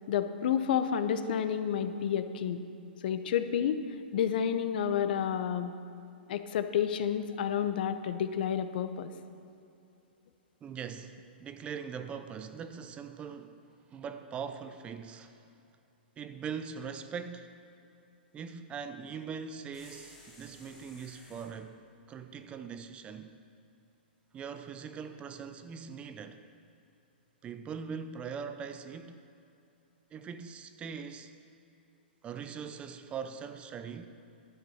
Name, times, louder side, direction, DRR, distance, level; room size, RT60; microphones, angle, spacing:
voice 1, 0.1-2.6 3.0-3.8 4.1-5.7 6.3-9.1, left 8 dB, 60° left, 10 dB, 0.7 m, -30 dB
voice 2, 10.6-13.6 13.9-15.4 16.2-17.5 18.3-21.8 22.1-23.3 24.3-26.4 27.4-29.2 30.1-31.3 32.2-34.1, right 6 dB, 20° right, 9 dB, 0.5 m, -41 dB
sound 1, 19.7-21.6, left 1 dB, 5° left, 2.6 m, -55 dB
11.5 x 8.0 x 5.6 m, 2.7 s
hypercardioid pair, 135°, 6 cm